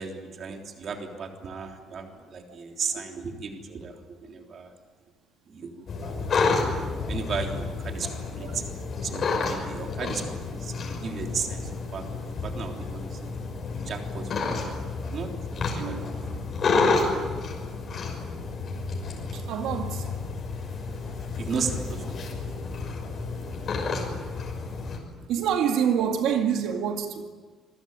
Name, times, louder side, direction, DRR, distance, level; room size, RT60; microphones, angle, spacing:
voice 1, 0.0-4.7 5.5-6.4 7.1-8.1 8.4-8.6 9.0-13.3 13.8-15.3 15.7-16.2 21.4-22.2 22.4-22.5 22.8-23.0, right 5 dB, 40° right, 3.4 m, -35 dB
sound 1, 5.9-25.0, left 4 dB, 35° left, 6.0 m, -30 dB
voice 2, 19.3-20.1 23.1-23.2 25.3-27.2, right 8 dB, 80° right, 2.3 m, -27 dB
27.0 x 22.5 x 9.1 m
cardioid pair, 180°, 0 cm